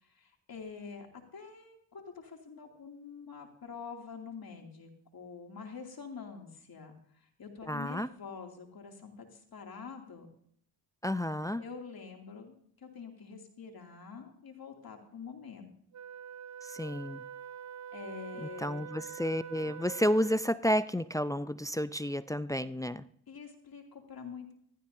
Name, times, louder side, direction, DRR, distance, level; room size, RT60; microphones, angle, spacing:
voice 1, 0.0-10.3 11.6-15.7 17.9-18.8 23.3-24.5, left 5 dB, 60° left, 2 dB, 2.7 m, -46 dB
voice 2, 7.7-8.1 11.0-11.6 16.7-17.2 18.4-23.0, equal, 10° left, 14 dB, 0.4 m, -31 dB
Wind instrument woodwind instrument, 15.9-20.6, right 8 dB, 45° right, 0.5 m, -45 dB
15.5 x 13.0 x 2.7 m, 0.64 s
cardioid pair, 55°, 40 cm